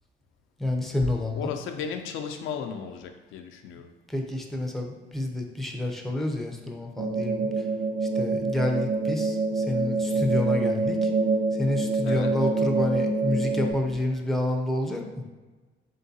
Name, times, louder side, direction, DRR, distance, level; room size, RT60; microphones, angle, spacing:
voice 1, 0.6-1.5 4.1-7.6 8.1-11.1 11.6-15.2, left 1 dB, ahead, 2 dB, 0.6 m, -29 dB
voice 2, 1.3-3.9 12.0-12.3, left 7 dB, 85° left, 5 dB, 0.4 m, -35 dB
sound 1, 7.0-13.7, right 3 dB, 60° right, 0.7 m, -26 dB
3.7 x 3.6 x 2.7 m, 1.3 s
cardioid pair, 90°, 20 cm